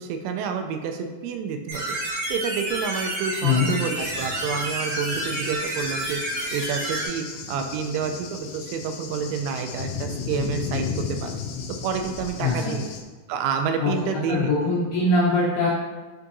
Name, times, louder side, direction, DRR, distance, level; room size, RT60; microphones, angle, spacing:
voice 1, 0.0-2.0 2.3-6.2 6.5-11.3 11.8-12.9 13.3-14.5, right 6 dB, 85° right, 5 dB, 3.0 m, -29 dB
sound 1, 1.7-7.0, right 1 dB, 60° right, 3.3 m, -29 dB
Cricket / Thunder, 4.0-13.0, left 6 dB, 85° left, 2.4 m, -35 dB
voice 2, 12.4-12.8 13.8-15.7, left 3 dB, 65° left, -7 dB, 2.6 m, -22 dB
8.4 x 4.7 x 2.6 m, 1.3 s
omnidirectional pair, 5.6 m